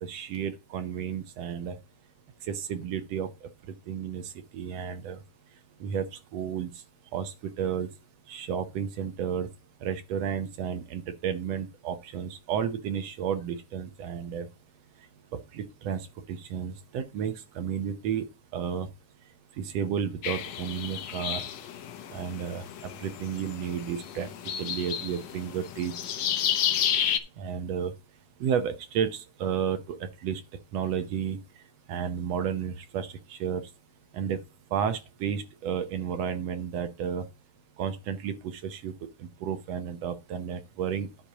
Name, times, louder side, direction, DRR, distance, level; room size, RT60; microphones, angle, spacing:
voice 1, 0.0-1.7 2.6-3.3 3.9-4.2 4.5-5.2 5.8-6.0 6.3-6.7 7.1-7.9 8.3-9.5 9.8-14.5 15.5-16.0 16.3-18.2 18.5-18.9 19.6-21.4 22.1-22.6 23.0-24.3 24.6-25.9 27.4-27.9 28.4-29.1 29.4-30.4 30.7-31.4 31.9-33.1 33.4-33.6 34.1-34.4 34.7-37.2 37.8-38.3 38.6-38.9 39.4-41.1, right 8 dB, 70° right, 1.8 m, -31 dB
sound 1, 20.2-27.2, left 9 dB, 70° left, 2.1 m, -31 dB
10.0 x 4.3 x 6.0 m
omnidirectional pair, 3.4 m